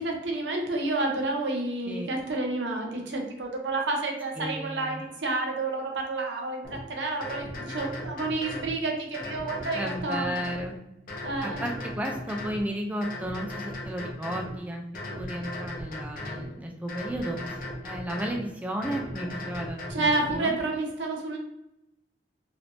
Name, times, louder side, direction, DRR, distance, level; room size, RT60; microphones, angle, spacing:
voice 1, 0.0-10.4 11.2-11.7 19.9-21.4, right 2 dB, 85° right, 1 dB, 0.7 m, -30 dB
voice 2, 4.4-5.0 9.7-10.8 11.4-20.5, equal, 10° right, 2 dB, 0.3 m, -34 dB
sound 1, 6.6-6.8 7.2-8.7 9.1-10.7 11.1-12.6 13.0-14.5 14.9-16.5 16.9-18.4 18.8-20.4, left 1 dB, 50° left, 0.8 m, -37 dB
3.2 x 2.6 x 2.9 m, 0.87 s
head